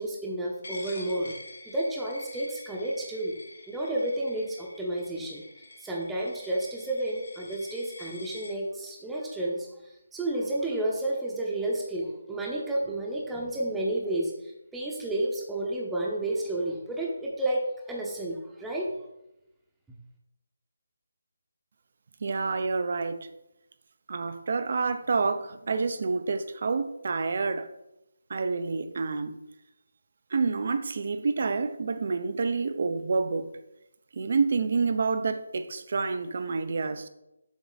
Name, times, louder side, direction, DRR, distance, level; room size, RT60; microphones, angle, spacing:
voice 1, 0.0-1.3 1.7-3.3 3.7-5.4 5.8-18.9, right 1 dB, 5° right, 0.8 m, -31 dB
Coin (dropping), 0.6-8.5, left 1 dB, 65° left, 1.4 m, -46 dB
voice 2, 22.2-23.3 24.1-27.7 28.3-29.4 30.3-33.5 34.1-37.1, right 4 dB, 50° right, 0.5 m, -28 dB
7.1 x 3.5 x 4.0 m
figure-of-eight pair, 155°, 0 cm